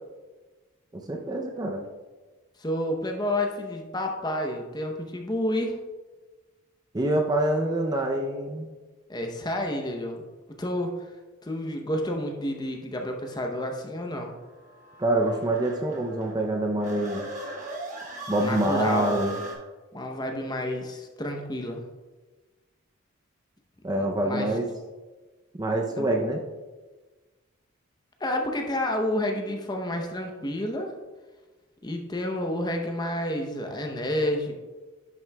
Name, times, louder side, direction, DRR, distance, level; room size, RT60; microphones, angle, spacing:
voice 1, 0.9-1.8 6.9-8.7 15.0-17.3 18.3-19.4 23.8-24.7 25.5-26.4, right 1 dB, 20° right, 2 dB, 0.5 m, -26 dB
voice 2, 2.6-5.8 9.1-10.2 10.6-10.9 11.4-14.3 18.4-19.2 19.9-21.8 24.0-24.5 26.0-26.1 28.2-30.9 31.8-34.6, left 1 dB, 20° left, 3 dB, 0.7 m, -30 dB
sound 1, 13.2-19.5, right 2 dB, 35° right, 1.3 m, -40 dB
10.5 x 6.1 x 2.2 m, 1.3 s
head